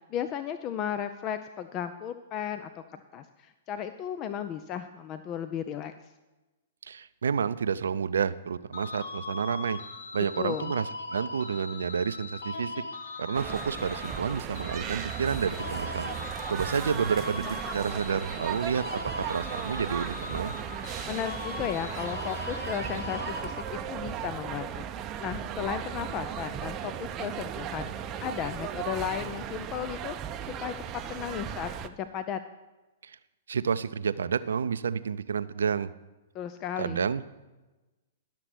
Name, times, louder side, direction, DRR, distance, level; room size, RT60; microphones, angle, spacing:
voice 1, 0.0-5.9 10.4-10.7 21.1-30.7 31.1-32.4 36.3-37.1, left 9 dB, 35° left, 10 dB, 0.5 m, -35 dB
voice 2, 6.8-9.8 10.1-12.7 13.2-16.1 16.5-19.0 19.3-20.5 33.0-33.2 33.5-35.9 36.8-37.3, right 6 dB, 80° right, 14 dB, 0.5 m, -30 dB
sound 1, 8.7-24.0, left 3 dB, 75° left, 1.3 m, -40 dB
sound 2, 13.3-31.9, right 9 dB, 30° right, 0.6 m, -36 dB
11.5 x 6.7 x 6.1 m, 1.1 s
hypercardioid pair, 115°, 0 cm